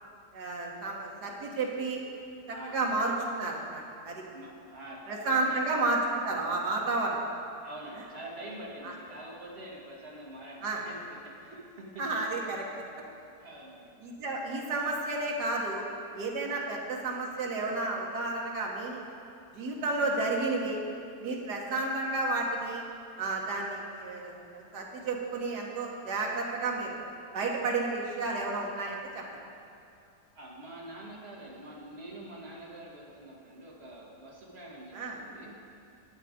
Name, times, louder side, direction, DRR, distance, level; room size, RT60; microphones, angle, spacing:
voice 1, 0.3-2.0 2.7-4.2 5.1-7.2 8.8-8.9 10.6-10.8 12.0-12.6 14.0-15.8 16.1-19.0 19.5-20.8 21.2-22.8 23.2-27.0 27.3-29.2 34.9-35.2, right 3 dB, 70° right, -1 dB, 1.9 m, -31 dB
voice 2, 2.5-2.8 4.3-5.7 7.6-12.1 13.4-13.9 16.5-16.7 21.7-21.9 30.3-35.9, right 1 dB, 35° right, -4 dB, 2.0 m, -46 dB
11.5 x 8.2 x 5.1 m, 2.7 s
omnidirectional pair, 1.8 m